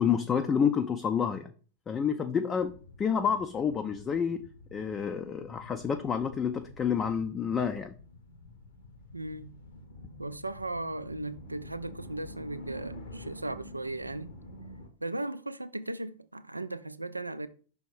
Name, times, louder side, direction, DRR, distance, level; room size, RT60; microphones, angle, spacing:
voice 1, 0.0-1.5 1.9-4.4 4.7-7.9, left 7 dB, 20° left, 0.4 m, -29 dB
sound 1, 2.6-14.9, left 1 dB, 65° left, 1.1 m, -48 dB
voice 2, 9.1-9.6 10.2-14.3 15.0-17.5, right 2 dB, 85° right, 0.3 m, -37 dB
5.9 x 3.5 x 4.7 m
figure-of-eight pair, 90°, 0 cm